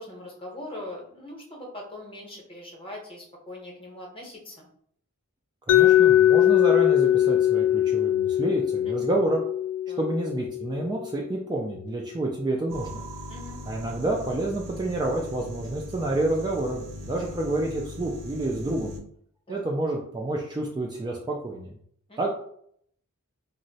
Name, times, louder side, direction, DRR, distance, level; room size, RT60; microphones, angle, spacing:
voice 1, 0.0-4.7 8.9-9.1 9.9-10.0 13.3-13.6 18.5-18.8 19.5-19.6 22.1-22.3, left 1 dB, 25° left, -1 dB, 0.8 m, -41 dB
Mallet percussion, 5.7-11.5, left 12 dB, 80° left, 0.3 m, -21 dB
voice 2, 5.7-9.4 10.0-13.0 13.7-18.9 19.5-21.7 22.2-22.3, right 2 dB, 20° right, -1 dB, 0.3 m, -29 dB
sound 1, 12.7-19.0, left 1 dB, 60° right, 0.6 m, -40 dB
2.6 x 2.0 x 3.9 m, 0.66 s
head